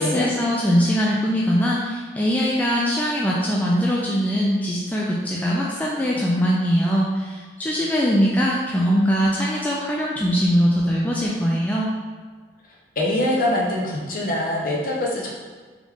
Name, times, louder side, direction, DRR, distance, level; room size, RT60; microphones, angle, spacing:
voice 1, 0.0-11.9, equal, 10° left, -5 dB, 0.3 m, -21 dB
voice 2, 13.0-15.3, left 1 dB, 50° left, -3 dB, 0.8 m, -23 dB
3.9 x 3.1 x 3.4 m, 1.5 s
head